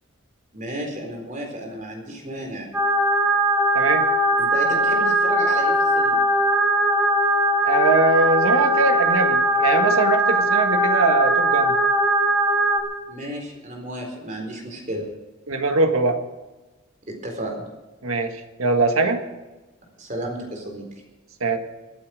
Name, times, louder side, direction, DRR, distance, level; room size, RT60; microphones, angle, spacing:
voice 1, 0.5-2.7 4.4-6.2 13.1-15.1 17.1-17.7 20.0-20.8, right 1 dB, 35° right, 2 dB, 4.1 m, -33 dB
sound 1, 2.7-12.8, right 1 dB, 10° right, 2.1 m, -20 dB
voice 2, 3.7-4.1 7.6-11.7 15.5-16.2 18.0-18.3 18.6-19.2 21.4-21.6, right 3 dB, 85° right, 5 dB, 1.7 m, -21 dB
23.5 x 8.6 x 5.0 m, 1.1 s
head